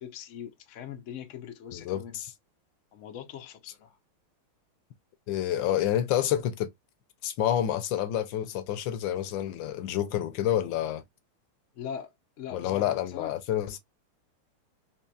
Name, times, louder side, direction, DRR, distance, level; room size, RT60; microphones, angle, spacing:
voice 1, 0.0-2.2 2.9-4.0 11.7-12.1 12.4-13.3, left 9 dB, 90° left, 0.6 m, -41 dB
voice 2, 1.7-2.3 5.3-6.7 7.2-11.0 12.5-13.8, left 11 dB, 70° left, 1.2 m, -28 dB
4.3 x 3.0 x 2.3 m
omnidirectional pair, 2.4 m